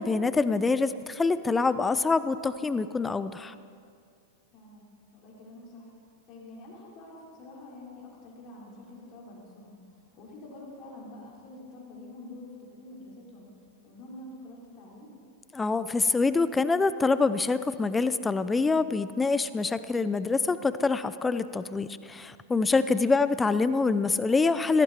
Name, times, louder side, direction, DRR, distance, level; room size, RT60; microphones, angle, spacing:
voice 1, 0.0-3.5 15.5-24.8, left 4 dB, 15° left, 14 dB, 0.5 m, -25 dB
voice 2, 4.5-4.9 5.1-5.9 6.3-13.5 13.8-15.1 22.7-22.9, left 2 dB, 45° left, -3 dB, 4.6 m, -47 dB
16.5 x 14.0 x 4.5 m, 2.3 s
hypercardioid pair, 100°, 0 cm